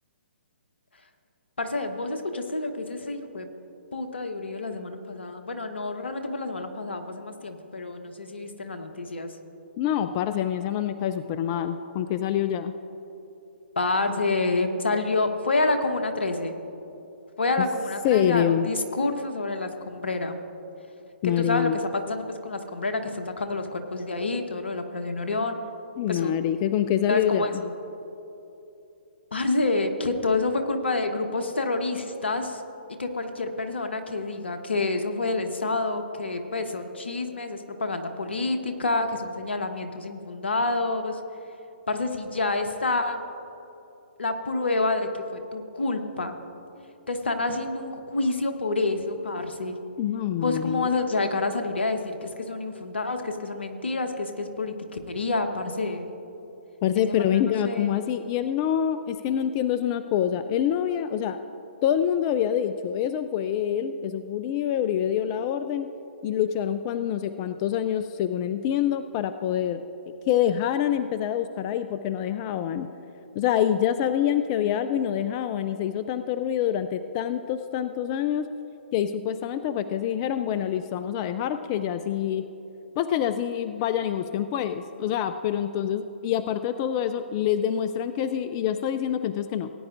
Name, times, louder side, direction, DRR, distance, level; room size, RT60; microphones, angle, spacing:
voice 1, 1.6-3.5 3.9-9.4 13.8-16.6 17.4-20.4 21.2-25.6 26.1-26.3 27.1-27.7 29.3-32.6 33.0-41.2 41.9-43.2 44.2-46.3 47.1-49.8 50.4-56.2 57.0-57.9, left 2 dB, 75° left, 6 dB, 1.1 m, -28 dB
voice 2, 9.8-12.7 17.6-17.7 18.0-18.7 21.2-21.8 26.0-27.5 50.0-50.9 56.8-61.4 61.8-65.9 66.2-69.8 70.3-72.9 73.4-78.5 78.9-82.5 83.0-89.7, left 10 dB, 30° left, 11 dB, 0.3 m, -26 dB
18.5 x 9.7 x 2.5 m, 3.0 s
figure-of-eight pair, 130°, 6 cm